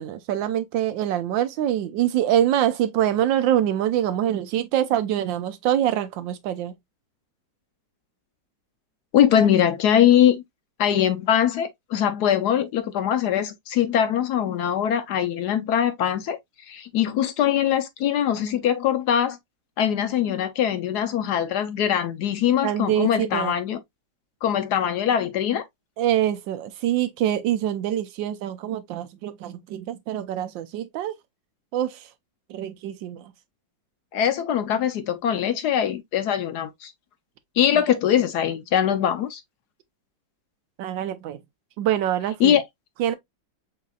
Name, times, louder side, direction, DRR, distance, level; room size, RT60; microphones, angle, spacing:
voice 1, 0.0-6.8 22.6-23.5 26.0-31.1 31.7-32.1 32.5-33.3 40.8-41.4 41.8-42.6 43.0-43.1, right 11 dB, 85° right, 1.3 m, -25 dB
voice 2, 9.1-10.4 10.8-16.4 16.7-19.4 19.8-23.8 24.4-25.6 34.1-36.9 37.6-39.4 42.4-42.6, left 9 dB, 70° left, 1.1 m, -22 dB
6.4 x 2.9 x 2.3 m
omnidirectional pair, 2.0 m